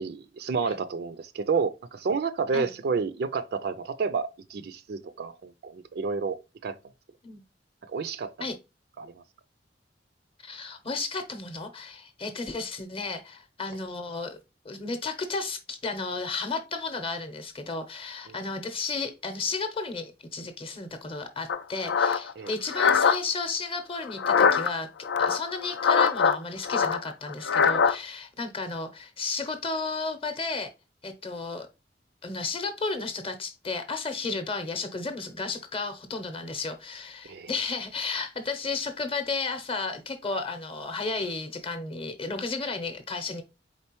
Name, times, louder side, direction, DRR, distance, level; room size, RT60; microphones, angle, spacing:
voice 1, 0.0-6.7 7.9-8.3 9.0-9.1 18.3-18.4 22.4-22.5 37.3-37.5, right 5 dB, 60° right, 0.4 m, -30 dB
voice 2, 10.4-14.4 14.6-24.9 25.2-30.7 31.0-31.7 32.2-43.4, left 3 dB, 30° left, 0.7 m, -33 dB
sound 1, 21.5-23.2 24.1-24.7 25.0-26.4 26.6-27.9, left 6 dB, 80° left, 0.4 m, -22 dB
4.3 x 3.6 x 3.0 m
head